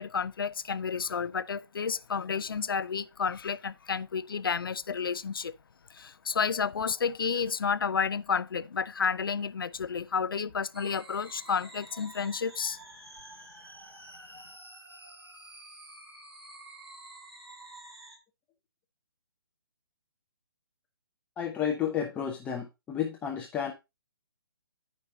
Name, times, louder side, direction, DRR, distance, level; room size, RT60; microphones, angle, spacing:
voice 1, 0.0-5.5 5.9-12.8, left 6 dB, 65° left, 0.5 m, -31 dB
sound 1, 10.7-18.2, right 1 dB, 85° right, 2.4 m, -49 dB
voice 2, 21.4-23.7, left 8 dB, 10° left, 0.8 m, -31 dB
13.5 x 5.3 x 2.7 m
figure-of-eight pair, 135°, 13 cm